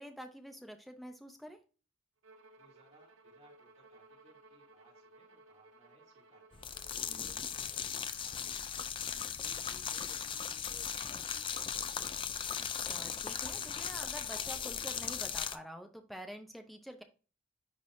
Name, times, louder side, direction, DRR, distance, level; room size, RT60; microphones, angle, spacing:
voice 1, 0.0-1.6 7.1-7.5 12.7-17.0, equal, ahead, 5 dB, 0.7 m, -48 dB
Bowed string instrument, 2.2-8.0, right 2 dB, 80° right, 0.7 m, -60 dB
voice 2, 2.6-6.6 7.1-7.9 8.2-12.2, right 1 dB, 35° right, -3 dB, 2.9 m, -63 dB
sound 1, 6.5-15.6, left 7 dB, 25° left, 0.4 m, -38 dB
10.5 x 4.0 x 2.7 m, 0.35 s
head